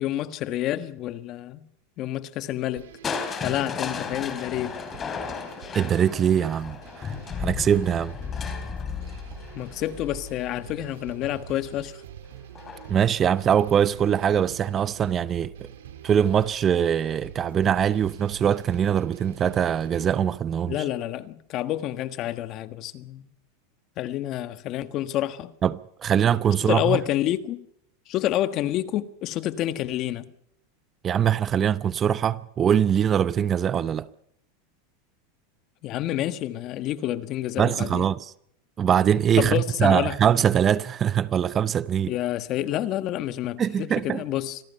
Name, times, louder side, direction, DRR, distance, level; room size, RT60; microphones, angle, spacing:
voice 1, 0.0-1.6 2.0-2.9 3.3-4.8 9.5-12.0 20.7-23.3 24.0-25.5 26.6-27.7 28.1-30.3 35.8-38.1 39.4-40.2 42.1-44.6, left 13 dB, 40° left, 1.5 m, -28 dB
sound 1, 2.8-20.2, right 9 dB, 85° right, 3.7 m, -45 dB
Crushing, 3.0-11.0 12.5-13.1 13.5-13.6, left 6 dB, 25° left, 3.4 m, -34 dB
voice 2, 5.7-8.2 8.4-8.5 12.9-15.7 16.0-20.8 25.6-27.0 31.0-34.1 37.6-38.3 38.8-42.1 43.6-44.2, right 9 dB, 25° right, 0.7 m, -22 dB
26.0 x 18.5 x 5.6 m
supercardioid pair, 135°, 0 cm